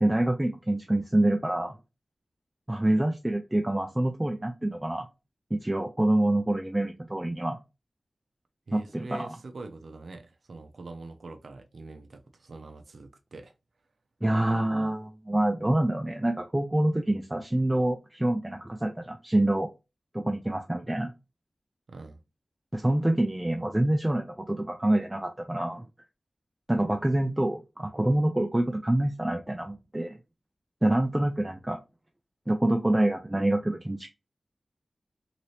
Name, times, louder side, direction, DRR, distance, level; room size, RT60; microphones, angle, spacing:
voice 1, 0.0-1.8 2.7-5.1 5.5-7.6 8.7-9.4 14.2-19.7 20.1-21.1 22.7-25.9 26.7-30.2 30.8-31.8 32.5-34.1, right 1 dB, 15° right, 0.4 m, -26 dB
voice 2, 8.7-13.5 21.9-22.2, right 3 dB, 75° right, 0.5 m, -44 dB
2.9 x 2.7 x 3.1 m
wide cardioid pair, 95°, 0 cm